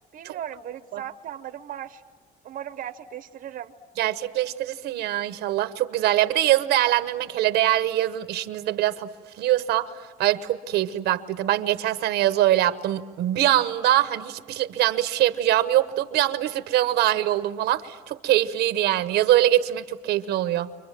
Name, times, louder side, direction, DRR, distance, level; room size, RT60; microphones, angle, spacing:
voice 1, 0.1-2.0 2.4-3.7, right 10 dB, 55° right, 9 dB, 0.9 m, -37 dB
voice 2, 4.0-9.1 9.4-20.7, right 13 dB, 80° right, 11 dB, 1.1 m, -23 dB
29.5 x 25.5 x 7.5 m, 1.4 s
cardioid pair, 110°, 17 cm